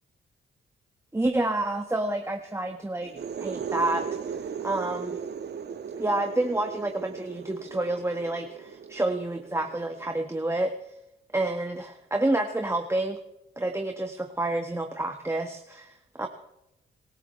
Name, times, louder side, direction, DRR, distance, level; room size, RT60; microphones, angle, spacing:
voice 1, 1.1-3.1 3.4-4.4 4.6-5.2 6.0-10.7 11.3-13.2 13.6-16.3, right 2 dB, 15° right, 4 dB, 1.4 m, -29 dB
sound 1, 3.0-10.6, right 6 dB, 60° right, 1.3 m, -37 dB
24.5 x 14.5 x 3.2 m, 0.88 s
cardioid pair, 75°, 20 cm